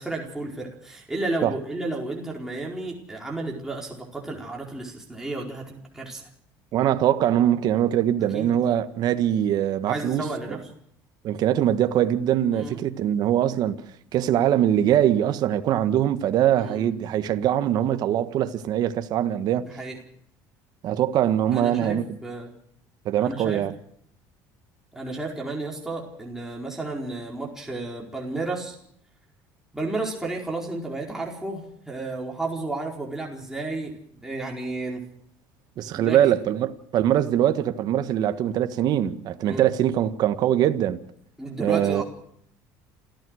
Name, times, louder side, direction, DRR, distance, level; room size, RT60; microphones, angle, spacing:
voice 1, 0.0-6.2 8.3-8.5 9.9-10.6 12.5-12.9 16.6-16.9 19.6-20.0 21.5-22.5 23.2-23.7 24.9-28.8 29.7-35.0 35.9-36.3 39.4-39.7 41.4-42.0, right 2 dB, 5° right, 4.6 m, -32 dB
voice 2, 6.7-10.2 11.2-13.8 14.1-19.7 20.8-22.0 23.0-23.7 35.8-41.0 41.6-42.0, right 11 dB, 55° right, 1.5 m, -22 dB
28.5 x 14.5 x 6.5 m
cardioid pair, 110°, 8 cm